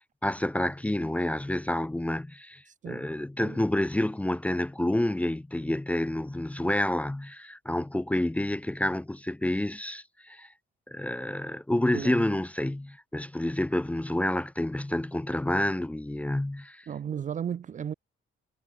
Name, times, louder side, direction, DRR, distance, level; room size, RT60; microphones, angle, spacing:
voice 1, 0.0-10.5 10.9-16.9, left 1 dB, 5° left, 0.6 m, -29 dB
voice 2, 11.9-12.2 16.9-17.9, right 8 dB, 35° right, 0.6 m, -34 dB
cardioid pair, 165°, 21 cm